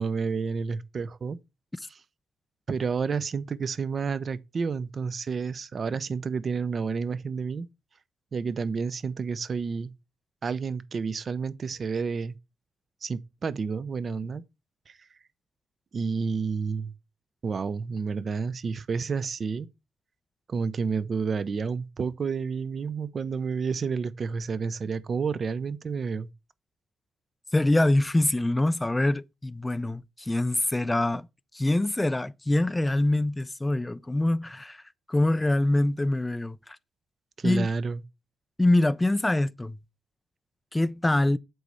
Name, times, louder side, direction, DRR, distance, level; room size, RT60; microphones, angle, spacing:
voice 1, 0.0-1.4 1.8-2.0 2.7-7.7 8.3-9.9 10.4-12.4 13.0-14.4 14.9-15.1 15.9-16.9 17.4-19.7 20.5-26.3 37.4-38.0, right 5 dB, 45° right, 0.6 m, -30 dB
voice 2, 27.5-31.3 31.5-34.8 35.1-36.8 37.4-37.7 38.6-39.8 40.7-41.4, left 1 dB, 10° left, 0.4 m, -24 dB
7.9 x 4.1 x 4.8 m
cardioid pair, 90°, 0 cm